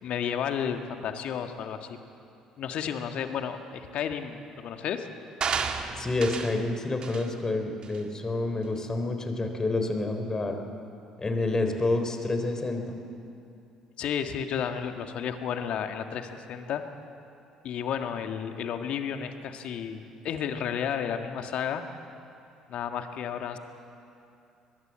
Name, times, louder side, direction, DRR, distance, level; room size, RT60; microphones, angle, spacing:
voice 1, 0.0-2.0 2.6-5.1 14.0-16.8 17.6-21.8 22.7-23.6, left 8 dB, 55° left, 6 dB, 1.8 m, -32 dB
sound 1, 5.4-6.6 7.0-7.3 7.8-8.0, right 5 dB, 45° right, 1.8 m, -31 dB
voice 2, 6.0-10.6 11.2-12.9, left 2 dB, 25° left, 6 dB, 3.8 m, -28 dB
23.0 x 21.5 x 7.6 m, 2.7 s
hypercardioid pair, 55°, 2 cm